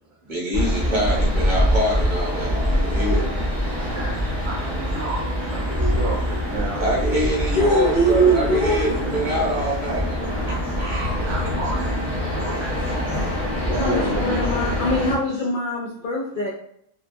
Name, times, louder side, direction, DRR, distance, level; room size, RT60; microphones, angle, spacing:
voice 1, 0.3-3.2 6.8-10.0 10.5-11.5, equal, 40° right, -4 dB, 0.9 m, -25 dB
sound 1, 0.5-15.1, equal, 20° left, 0.9 m, -24 dB
voice 2, 3.9-6.8 7.4-7.7 10.1-10.2 11.3-11.8 12.2-12.9 13.7-14.4, right 2 dB, 65° right, -2 dB, 1.1 m, -31 dB
voice 3, 7.6-8.9 13.8-16.5, right 1 dB, 70° left, -4 dB, 0.4 m, -22 dB
Trumpet, 7.6-14.9, equal, 5° right, 0.7 m, -42 dB
2.8 x 2.2 x 2.5 m, 0.68 s
omnidirectional pair, 1.4 m